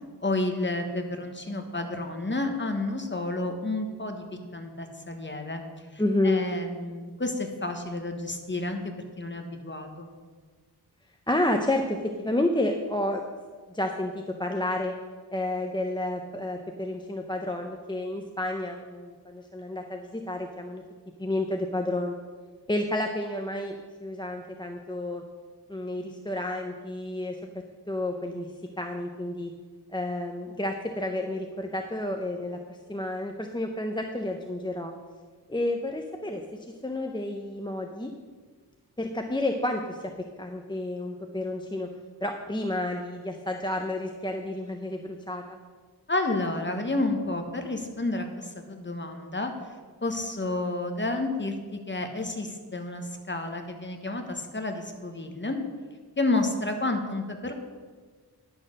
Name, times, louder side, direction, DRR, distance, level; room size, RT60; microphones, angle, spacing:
voice 1, 0.2-4.2 4.5-5.6 5.9-8.8 9.2-10.1 46.1-49.5 50.0-55.6 56.2-57.5, left 2 dB, 25° left, 5 dB, 1.3 m, -30 dB
voice 2, 6.0-6.4 11.3-13.2 13.7-14.9 15.3-20.8 21.2-22.2 22.7-23.8 24.0-25.2 25.7-27.4 27.9-28.5 28.8-29.5 29.9-34.9 35.5-36.4 36.8-38.1 39.0-40.1 40.4-41.9 42.2-45.4, left 1 dB, 10° left, 3 dB, 0.7 m, -30 dB
10.5 x 6.5 x 6.5 m, 1.5 s
wide cardioid pair, 85°, 41 cm